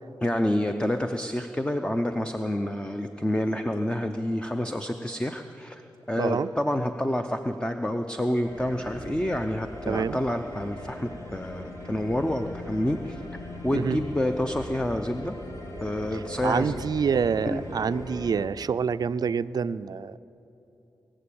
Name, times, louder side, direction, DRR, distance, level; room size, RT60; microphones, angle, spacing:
voice 1, 0.2-5.8 6.1-13.2 13.6-15.3 15.8-16.8 17.5-17.6, left 1 dB, 10° left, 6 dB, 0.7 m, -28 dB
voice 2, 6.2-6.5 9.9-10.2 13.7-14.0 16.1-20.2, right 6 dB, 55° right, 13 dB, 0.4 m, -27 dB
sound 1, 8.4-18.5, left 1 dB, 40° left, 2.8 m, -39 dB
21.5 x 7.7 x 8.7 m, 2.9 s
cardioid pair, 70°, 8 cm